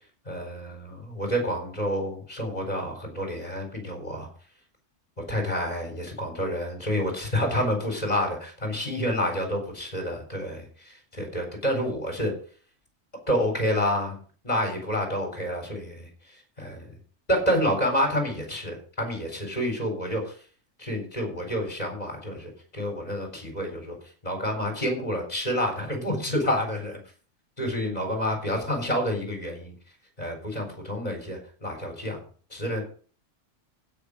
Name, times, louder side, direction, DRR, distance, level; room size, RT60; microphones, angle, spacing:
voice 1, 0.3-4.3 5.3-12.3 13.3-16.9 17.3-20.4 20.8-24.0 24.2-27.0 27.6-29.7 30.2-32.2 32.5-32.8, equal, 30° left, 3 dB, 4.2 m, -29 dB
16.0 x 6.2 x 5.1 m, 0.42 s
omnidirectional pair, 1.3 m